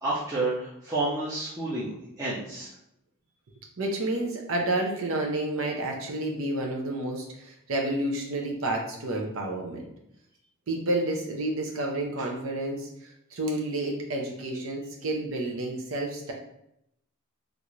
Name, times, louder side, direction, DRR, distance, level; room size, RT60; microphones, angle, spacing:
voice 1, 0.0-2.7, right 2 dB, 15° right, -10 dB, 0.6 m, -30 dB
voice 2, 3.8-9.9 10.7-16.3, right 1 dB, 65° right, 0 dB, 0.6 m, -30 dB
3.4 x 2.5 x 3.1 m, 0.78 s
head